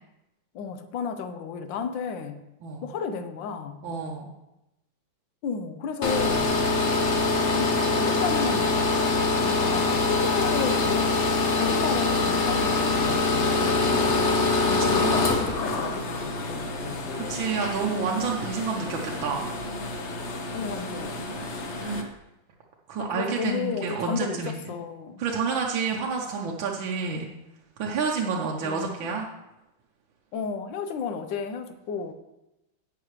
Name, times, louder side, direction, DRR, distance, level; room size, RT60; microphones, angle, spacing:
voice 1, 0.5-2.4 2.8-3.8 5.4-6.6 7.3-8.8 9.4-11.2 11.5-14.3 14.7-17.4 20.5-21.4 23.0-25.3 28.6-29.1 30.3-32.1, left 6 dB, 75° left, 8 dB, 1.4 m, -33 dB
voice 2, 3.8-4.3 14.9-15.3 17.1-19.5 21.7-22.1 22.9-24.7 25.2-27.3 27.8-29.3, right 5 dB, 75° right, -1 dB, 1.6 m, -29 dB
sound 1, 6.0-22.0, left 3 dB, 50° left, 0.9 m, -25 dB
17.0 x 5.8 x 3.2 m, 0.92 s
omnidirectional pair, 2.2 m